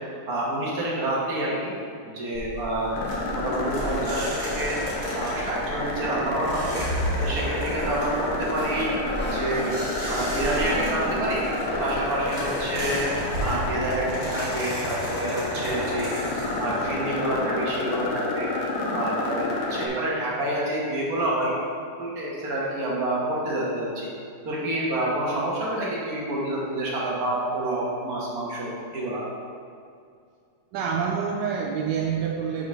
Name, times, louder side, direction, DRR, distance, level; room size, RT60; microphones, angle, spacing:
voice 1, 0.3-1.7 2.0-2.9 3.2-4.8 5.2-6.8 7.2-8.9 9.2-9.7 10.0-11.4 11.8-13.1 13.4-18.5 18.9-21.5 22.0-24.1 24.4-29.2, right 1 dB, 45° right, -5 dB, 1.7 m, -28 dB
sound 1, 2.3-13.0, equal, 5° left, 1.2 m, -37 dB
sound 2, 2.9-19.9, left 2 dB, 75° left, 1.6 m, -30 dB
sound 3, 3.1-18.1, right 1 dB, 30° right, 1.8 m, -35 dB
voice 2, 30.7-32.7, right 6 dB, 75° right, 1 dB, 1.0 m, -27 dB
5.2 x 4.7 x 5.4 m, 2.3 s
omnidirectional pair, 2.4 m